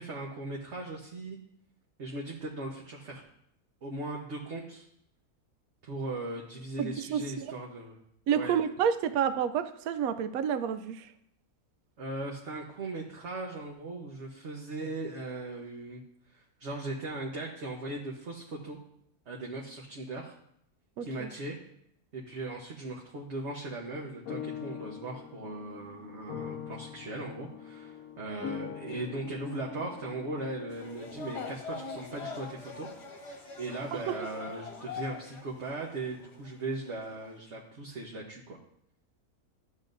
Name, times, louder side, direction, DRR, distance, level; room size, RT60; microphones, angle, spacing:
voice 1, 0.0-1.4 2.0-3.2 3.8-4.9 5.8-8.0 8.3-8.6 12.0-16.0 16.3-18.8 19.3-20.4 21.0-21.6 22.1-32.9 33.3-38.6, right 2 dB, 50° right, -2 dB, 1.2 m, -38 dB
voice 2, 6.8-7.2 8.3-11.0 21.0-21.3 34.1-34.2, right 8 dB, 75° right, 11 dB, 1.0 m, -29 dB
sound 1, 24.0-31.5, left 9 dB, 75° left, 1.0 m, -43 dB
sound 2, 30.7-35.4 35.7-36.5 36.9-37.3, left 5 dB, 45° left, 1.3 m, -43 dB
12.5 x 7.5 x 2.6 m, 0.73 s
omnidirectional pair, 1.6 m